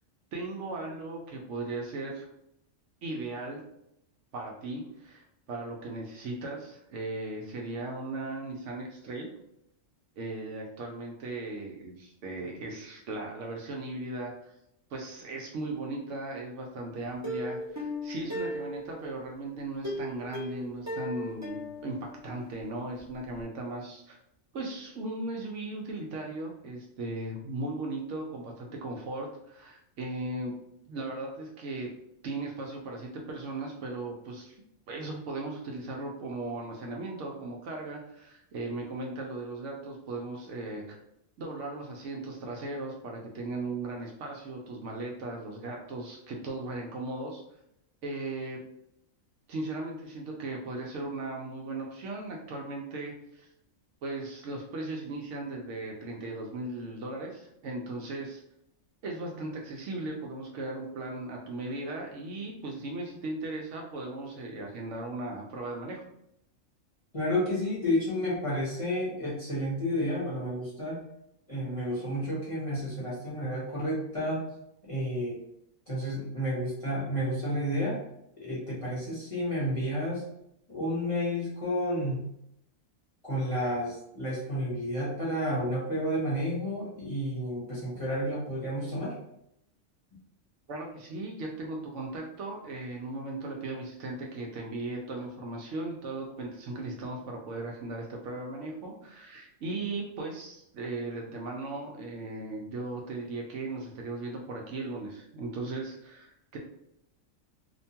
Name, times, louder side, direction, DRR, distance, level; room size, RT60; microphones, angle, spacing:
voice 1, 0.3-2.3 3.0-3.6 4.3-9.3 10.2-14.5 14.9-24.2 24.5-30.5 30.9-31.9 32.2-34.6 34.9-41.0 41.4-47.4 48.0-48.7 49.5-53.5 54.0-58.4 59.0-66.1 90.7-106.6, right 2 dB, 70° right, 0 dB, 0.9 m, -37 dB
Plucked string instrument, 17.2-19.2 19.8-22.6 23.0-23.1 23.4-23.5, left 1 dB, 25° right, 0.4 m, -37 dB
voice 2, 67.1-71.0 71.5-74.4 74.9-75.4 75.9-78.0 78.4-80.2 80.7-82.2 83.2-89.1, equal, 30° left, -7 dB, 0.8 m, -31 dB
2.9 x 2.2 x 2.7 m, 0.78 s
omnidirectional pair, 1.4 m